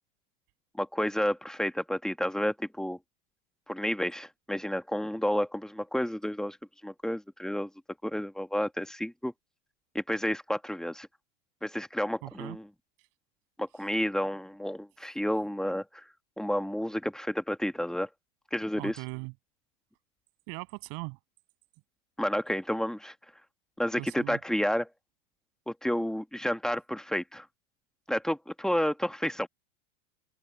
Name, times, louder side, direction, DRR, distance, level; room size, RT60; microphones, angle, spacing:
voice 1, 0.8-3.0 3.7-6.6 6.8-7.7 8.0-9.3 10.0-11.1 11.6-12.6 13.6-15.8 16.4-18.1 18.5-19.0 22.2-23.1 23.8-24.9 25.7-27.5 28.1-29.5, equal, ahead, 1.7 m, -30 dB
voice 2, 12.2-12.6 18.8-19.3 20.5-21.2 24.0-24.4, right 34 dB, 55° right, 7.0 m, -39 dB
open air
hypercardioid pair, 110°, 42 cm